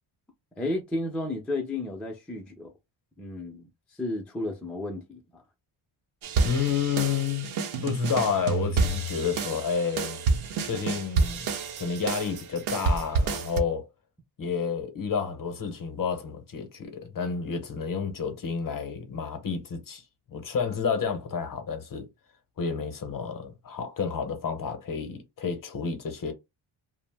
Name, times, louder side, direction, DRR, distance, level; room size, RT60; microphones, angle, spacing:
voice 1, 0.6-2.7 3.2-3.7 4.0-5.4, left 2 dB, 5° left, 0.4 m, -32 dB
sound 1, 6.2-13.6, right 4 dB, 75° right, 0.7 m, -28 dB
voice 2, 6.4-10.2 10.6-11.5 11.8-13.9 14.4-20.0 20.3-22.1 22.6-26.3, left 6 dB, 40° left, 0.7 m, -30 dB
2.5 x 2.0 x 3.3 m
wide cardioid pair, 150°, 49 cm